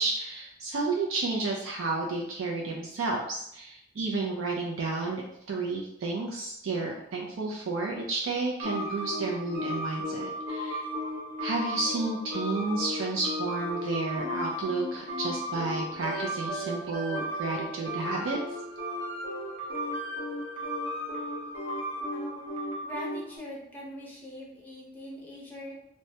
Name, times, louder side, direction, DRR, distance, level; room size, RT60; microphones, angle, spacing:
voice 1, 0.0-10.8 11.4-18.4, right 3 dB, 80° right, -1 dB, 0.4 m, -31 dB
sound 1, 8.6-9.1 9.7-11.1 11.4-11.9 13.9-14.5 15.1-16.7 17.2-17.6 19.6-20.1 20.6-22.1 22.6-23.0, right 2 dB, 30° right, 0.5 m, -39 dB
sound 2, 8.6-23.4, left 1 dB, 60° right, 1.0 m, -35 dB
voice 2, 22.1-22.4 22.8-25.7, equal, 10° left, -4 dB, 0.6 m, -42 dB
3.1 x 2.1 x 2.7 m, 0.78 s
head